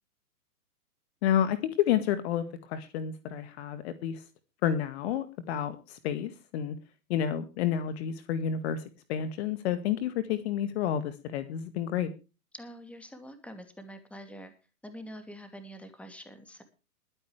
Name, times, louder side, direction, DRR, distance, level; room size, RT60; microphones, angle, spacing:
voice 1, 1.2-4.2 4.6-6.8 7.1-12.1, left 9 dB, 40° left, 11 dB, 1.8 m, -30 dB
voice 2, 12.5-14.5 14.8-16.6, equal, 5° left, 8 dB, 2.6 m, -45 dB
22.0 x 9.8 x 3.3 m, 0.32 s
figure-of-eight pair, 120°, 47 cm